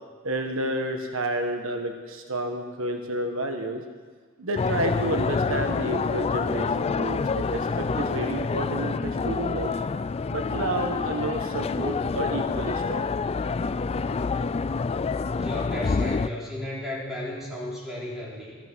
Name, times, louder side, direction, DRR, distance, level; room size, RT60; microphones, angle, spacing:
voice 1, 0.2-3.8 4.4-9.7 10.3-13.1, right 1 dB, 70° right, 5 dB, 1.3 m, -30 dB
sound 1, 4.6-16.3, left 4 dB, 30° left, 0.3 m, -27 dB
voice 2, 15.4-18.6, left 1 dB, ahead, -6 dB, 4.1 m, -34 dB
14.5 x 13.0 x 6.3 m, 1.4 s
head